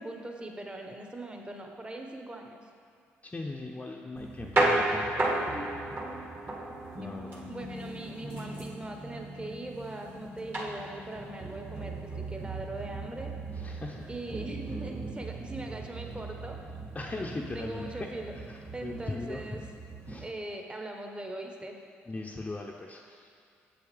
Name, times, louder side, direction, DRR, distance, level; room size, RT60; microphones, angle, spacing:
voice 1, 0.0-2.6 7.0-7.2 7.5-13.3 14.1-16.6 17.5-18.3 18.7-19.6 20.2-21.8, right 2 dB, 20° right, 2 dB, 1.0 m, -40 dB
voice 2, 3.2-5.8 7.0-7.5 13.6-14.1 16.9-18.1 18.5-19.4 20.1-20.3 22.1-23.3, left 2 dB, 25° left, -1 dB, 0.6 m, -39 dB
sound 1, 4.2-20.3, right 2 dB, 40° right, 1.4 m, -35 dB
7.4 x 7.0 x 3.4 m, 2.3 s
supercardioid pair, 60°, 5 cm